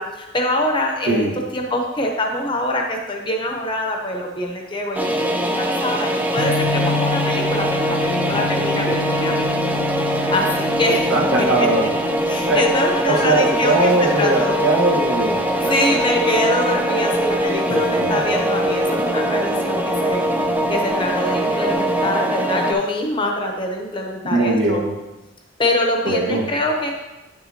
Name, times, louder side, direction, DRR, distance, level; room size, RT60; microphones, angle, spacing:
voice 1, 0.0-1.3 1.5-9.5 10.0-11.1 11.4-11.7 12.3-14.6 15.6-20.2 20.7-24.9 25.6-26.9, left 1 dB, 25° left, 2 dB, 0.8 m, -24 dB
sound 1, 4.9-22.7, right 1 dB, 10° right, 0.5 m, -22 dB
sound 2, 6.4-22.1, left 3 dB, 70° left, 0.7 m, -31 dB
voice 2, 11.1-11.8 12.5-12.6 13.1-16.0 18.0-18.2 24.3-24.9 26.0-26.4, right 2 dB, 65° right, -1 dB, 1.3 m, -20 dB
9.2 x 7.0 x 2.8 m, 1.1 s
head